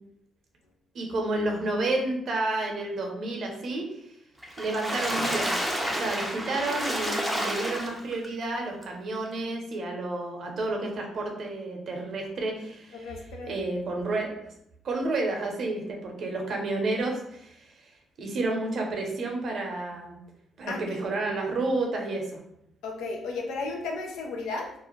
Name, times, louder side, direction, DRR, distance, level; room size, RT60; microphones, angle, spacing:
voice 1, 0.9-3.8 4.6-5.6 5.9-14.3 14.8-17.7 18.2-20.2 20.6-22.4, right 2 dB, 55° right, 1 dB, 0.7 m, -30 dB
Water / Splash splatter, 4.4-8.3 8.8-8.9 9.3-9.4, equal, ahead, 0.5 m, -30 dB
voice 2, 12.9-13.6 20.7-21.0 22.8-24.7, left 3 dB, 85° left, 1 dB, 0.5 m, -34 dB
2.5 x 2.1 x 3.0 m, 0.76 s
cardioid pair, 90°, 0 cm